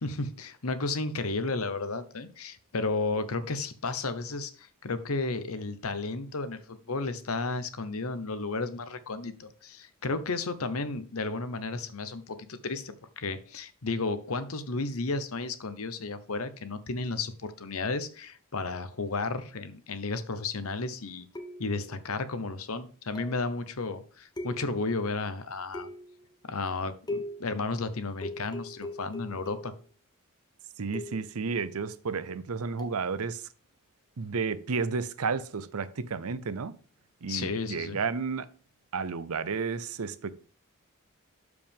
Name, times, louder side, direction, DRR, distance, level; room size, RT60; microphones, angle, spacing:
voice 1, 0.0-21.3 21.6-25.9 26.5-29.7 37.3-38.0, left 3 dB, 70° left, 1.0 m, -33 dB
sound 1, 21.3-21.9 23.1-23.5 24.4-25.0 25.7-26.2 27.1-27.6 28.2-29.9 30.9-31.4 32.8-33.0, left 1 dB, 20° left, 1.1 m, -40 dB
voice 2, 30.8-33.4 34.2-36.7 37.2-38.5 38.9-40.3, right 5 dB, 75° right, 0.6 m, -32 dB
12.0 x 5.0 x 3.6 m
head